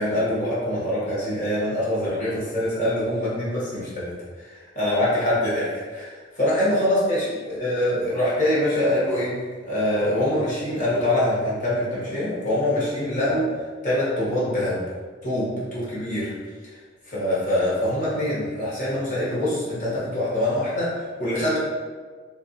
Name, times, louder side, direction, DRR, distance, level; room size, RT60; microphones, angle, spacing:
voice 1, 0.0-9.3 9.6-13.5 13.8-14.8 15.2-16.3 17.1-21.6, left 1 dB, 40° left, -8 dB, 1.1 m, -24 dB
2.8 x 2.4 x 2.7 m, 1.5 s
head